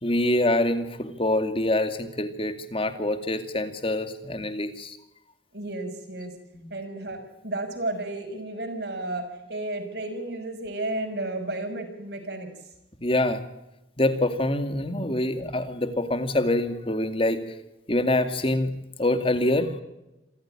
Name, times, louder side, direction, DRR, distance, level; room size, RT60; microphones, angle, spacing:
voice 1, 0.0-5.0 6.5-6.7 13.0-13.4 14.0-17.4 17.9-18.7 19.0-19.8, left 1 dB, 30° left, 9 dB, 2.4 m, -25 dB
voice 2, 5.5-6.4 6.7-12.5, right 2 dB, 60° right, 4 dB, 6.0 m, -32 dB
27.5 x 14.5 x 8.9 m, 0.94 s
head